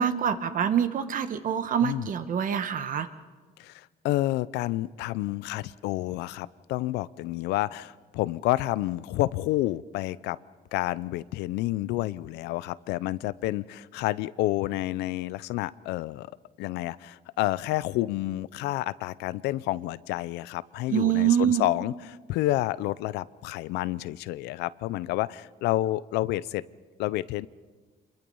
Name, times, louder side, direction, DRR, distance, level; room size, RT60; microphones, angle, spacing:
voice 1, 0.0-3.1 20.9-21.6, right 9 dB, 50° right, 10 dB, 1.2 m, -25 dB
voice 2, 3.6-10.4 10.7-16.3 16.6-26.6 27.0-27.5, left 16 dB, 90° left, 18 dB, 0.6 m, -29 dB
26.5 x 22.5 x 5.5 m, 1.3 s
cardioid pair, 110°, 17 cm